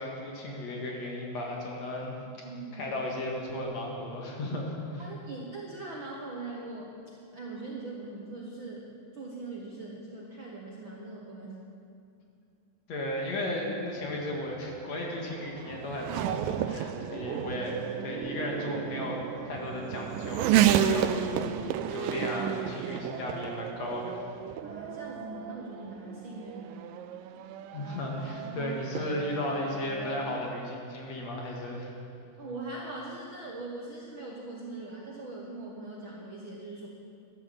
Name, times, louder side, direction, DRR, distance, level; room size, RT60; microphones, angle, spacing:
voice 1, 0.0-5.1 12.9-24.2 27.7-31.9, left 1 dB, 55° left, -1 dB, 2.7 m, -35 dB
voice 2, 2.4-2.9 5.0-6.9 7.3-11.6 17.0-17.3 24.6-26.8 32.4-36.9, right 2 dB, 55° right, -2 dB, 1.4 m, -41 dB
Race car auto racing / Accelerating revving vroom, 14.1-30.4, right 10 dB, 85° right, 2.3 m, -32 dB
12.5 x 11.5 x 7.2 m, 2.5 s
omnidirectional pair, 3.9 m